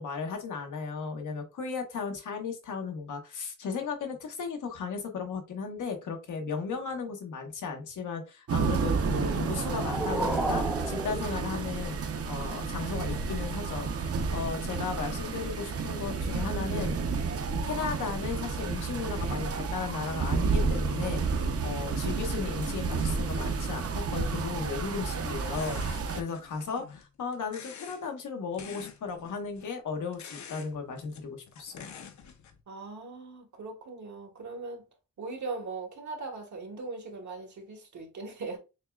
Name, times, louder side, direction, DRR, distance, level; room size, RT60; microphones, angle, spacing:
voice 1, 0.0-12.0 12.3-17.0 17.6-25.8 26.1-31.9, left 5 dB, 90° left, 1.1 m, -35 dB
A rain & thunder lightning close & cars sirens loop, 8.5-26.2, right 4 dB, 50° right, 0.6 m, -31 dB
sound 1, 9.4-12.3, right 1 dB, 5° right, 0.6 m, -34 dB
sound 2, 25.5-27.1 27.3-28.0 28.5-29.7 30.1-30.7 31.0-32.6, left 7 dB, 70° left, 0.7 m, -47 dB
voice 2, 32.7-34.8 35.2-38.6, right 3 dB, 70° right, 1.4 m, -39 dB
6.3 x 2.3 x 2.3 m
wide cardioid pair, 120°, 30 cm